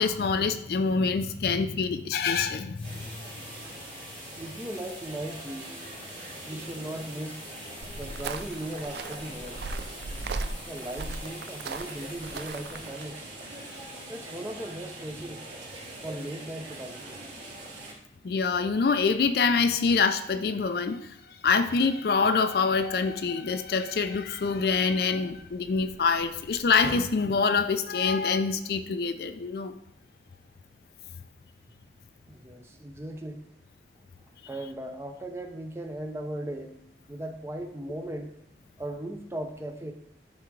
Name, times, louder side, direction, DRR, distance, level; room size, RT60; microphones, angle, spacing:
voice 1, 0.0-3.0 13.6-13.7 18.2-21.2 21.4-29.8, left 5 dB, 60° left, 9 dB, 0.4 m, -25 dB
sound 1, 2.7-13.3, left 4 dB, 30° left, 0.7 m, -49 dB
sound 2, 2.8-17.9, right 2 dB, 90° right, 2.5 m, -43 dB
voice 2, 4.4-5.8 6.4-7.4 7.9-9.6 10.7-13.3 14.1-15.4 16.0-17.2 32.3-33.4 34.5-36.7 37.1-38.3 38.8-39.9, right 1 dB, 15° right, 5 dB, 0.5 m, -37 dB
sound 3, 7.8-13.0, right 3 dB, 65° right, 0.4 m, -37 dB
10.5 x 3.5 x 3.2 m, 0.75 s
head